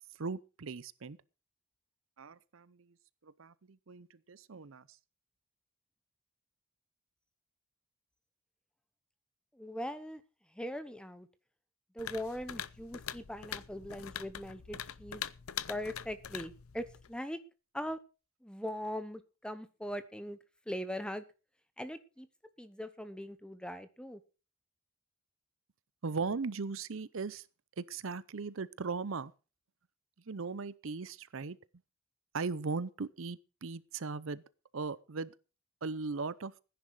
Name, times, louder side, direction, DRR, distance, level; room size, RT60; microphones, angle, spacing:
voice 1, 0.2-1.2 2.2-2.9 3.2-4.8 26.0-27.5 27.8-29.3 30.3-31.6 32.3-34.4 34.7-35.3 35.8-36.5, right 4 dB, 65° right, 0.6 m, -38 dB
voice 2, 9.5-10.2 10.5-11.3 11.9-15.2 15.7-17.4 17.7-18.0 18.4-20.4 20.7-21.2 21.8-22.3 22.6-24.2, equal, 5° left, 1.0 m, -40 dB
sound 1, 12.0-17.2, left 9 dB, 80° left, 0.7 m, -43 dB
15.5 x 10.5 x 4.8 m
head